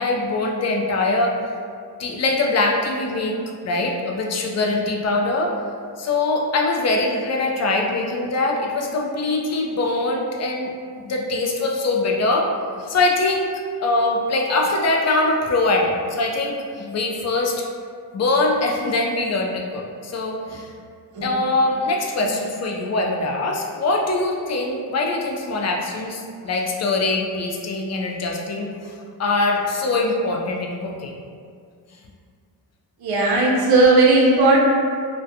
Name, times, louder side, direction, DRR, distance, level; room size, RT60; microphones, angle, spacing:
voice 1, 0.0-1.3 2.0-3.4 3.6-5.5 6.0-10.7 11.0-12.5 12.8-13.5 13.8-17.6 18.1-20.7 21.2-31.2, left 2 dB, 40° left, 0 dB, 0.4 m, -22 dB
voice 2, 33.0-34.6, right 2 dB, 65° right, -3 dB, 0.7 m, -16 dB
2.4 x 2.2 x 2.6 m, 2.1 s
cardioid pair, 75°, 41 cm